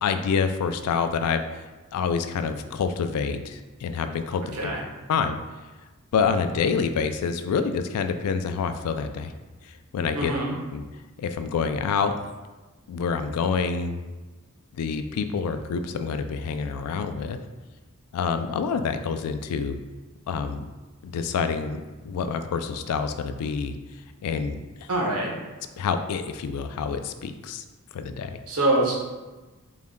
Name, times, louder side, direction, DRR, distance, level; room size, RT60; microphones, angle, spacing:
voice 1, 0.0-4.7 5.1-5.4 6.1-9.3 9.6-10.3 10.7-10.8 11.2-12.1 12.9-14.0 14.8-17.4 18.1-19.8 20.3-20.6 21.0-23.8 24.2-24.9 25.8-27.6 27.9-28.4, left 5 dB, 80° left, 8 dB, 0.3 m, -27 dB
voice 2, 10.1-10.5 24.9-25.3 28.5-29.0, right 1 dB, 75° right, -1 dB, 0.8 m, -24 dB
3.9 x 2.1 x 3.6 m, 1.2 s
head